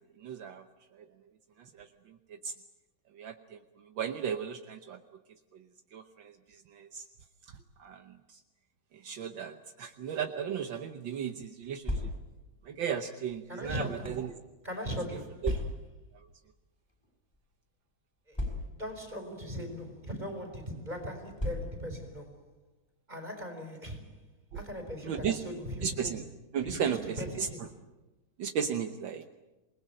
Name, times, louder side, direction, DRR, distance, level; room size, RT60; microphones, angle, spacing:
voice 1, 0.2-0.6 1.8-1.9 2.3-2.5 3.2-3.6 4.0-5.0 5.9-6.3 6.7-7.0 7.8-8.4 9.0-12.1 12.7-14.3 15.4-15.6 25.0-25.4 25.8-26.2 26.5-27.5 28.4-29.3, right 8 dB, 70° right, 1.7 m, -35 dB
sound 1, 11.6-12.5 13.3-14.3 15.4-16.0 16.9-17.1 17.3-17.4 18.3-19.0 19.9-20.1 21.4-22.0, left 1 dB, 10° left, 6.5 m, -36 dB
voice 2, 13.5-14.1 14.6-15.6 18.3-18.5 18.8-22.4 23.1-24.1 24.5-26.1 26.6-27.7, equal, 20° right, 4.5 m, -39 dB
27.5 x 20.0 x 9.0 m
omnidirectional pair, 2.2 m